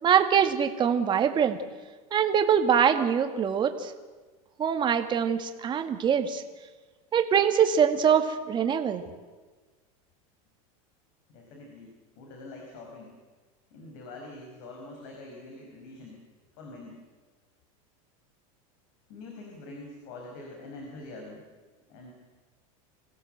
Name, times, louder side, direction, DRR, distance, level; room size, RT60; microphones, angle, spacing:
voice 1, 0.0-1.6 2.1-3.9 4.6-6.4 7.1-9.0, right 8 dB, 25° right, 7 dB, 1.9 m, -23 dB
voice 2, 11.3-13.2 13.7-16.2 16.6-17.0 19.1-21.4 21.9-22.1, left 2 dB, 60° left, 1 dB, 5.5 m, -44 dB
26.0 x 16.5 x 8.0 m, 1.3 s
supercardioid pair, 135°, 18 cm